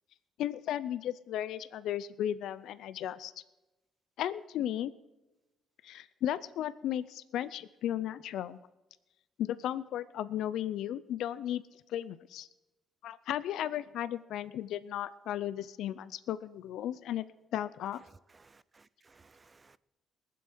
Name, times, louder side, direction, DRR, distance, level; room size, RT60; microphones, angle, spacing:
voice 1, 0.4-3.3 4.2-4.9 5.8-8.6 9.4-11.6 11.9-12.5 13.0-17.3 17.5-18.0, left 11 dB, 80° left, 0.5 m, -35 dB
voice 2, 18.3-19.8, right 4 dB, 30° right, 0.6 m, -62 dB
20.5 x 7.7 x 6.2 m
cardioid pair, 90°, 0 cm